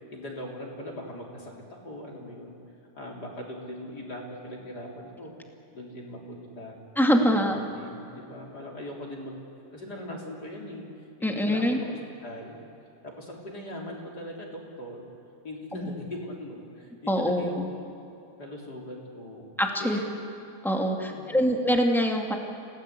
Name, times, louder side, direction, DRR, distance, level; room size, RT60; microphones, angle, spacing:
voice 1, 0.1-2.6 2.9-5.3 5.7-6.8 7.2-9.4 9.7-10.9 11.2-12.6 13.0-15.1 15.4-18.0 18.4-19.5 19.8-20.1 21.1-21.6, left 1 dB, 30° left, -1 dB, 3.7 m, -40 dB
voice 2, 6.9-7.6 11.2-11.8 15.7-16.0 17.1-17.7 19.6-20.0 20.6-22.3, equal, ahead, 1 dB, 1.1 m, -24 dB
28.5 x 18.0 x 8.4 m, 2.8 s
omnidirectional pair, 4.1 m